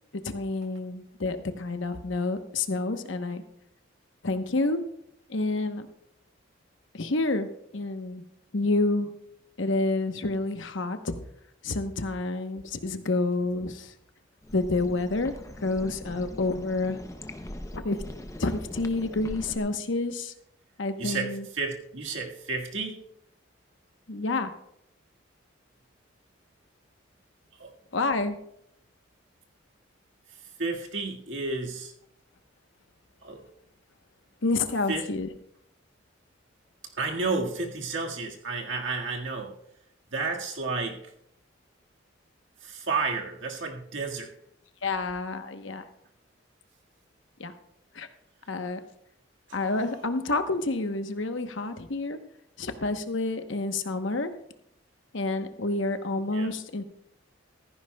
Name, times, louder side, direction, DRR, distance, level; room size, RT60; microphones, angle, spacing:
voice 1, 0.2-3.4 4.2-4.8 5.3-5.9 6.9-8.2 8.5-9.1 9.6-11.1 11.6-13.9 14.5-15.3 15.6-17.0 17.7-18.0 18.4-20.3 20.8-21.5 24.1-24.5 27.9-28.4 34.4-35.4 44.8-45.9 47.4-47.5 47.9-48.1 48.5-48.8 49.5-52.2 52.6-54.3 55.1-56.8, left 2 dB, 70° left, 8 dB, 1.0 m, -29 dB
sound 1, 14.4-19.6, left 1 dB, 15° left, 0.6 m, -41 dB
voice 2, 21.0-23.0 27.5-27.8 30.3-31.9 33.2-33.4 34.9-35.0 37.0-39.6 40.1-41.1 42.6-44.3 49.5-50.0 56.3-56.5, right 3 dB, 70° right, 1 dB, 1.8 m, -32 dB
15.5 x 14.5 x 2.3 m, 0.74 s
head